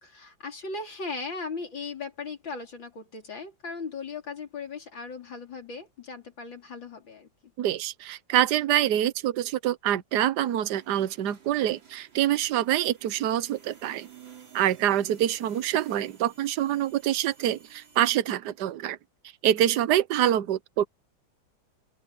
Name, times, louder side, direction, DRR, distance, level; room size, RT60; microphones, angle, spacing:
voice 1, 0.0-7.3 14.9-15.0, left 4 dB, 75° left, 4.7 m, -38 dB
voice 2, 7.6-14.1 14.5-19.0 19.4-20.8, right 11 dB, 65° right, 1.4 m, -25 dB
sound 1, 10.4-18.1, right 7 dB, 80° right, 4.0 m, -54 dB
open air
omnidirectional pair, 2.1 m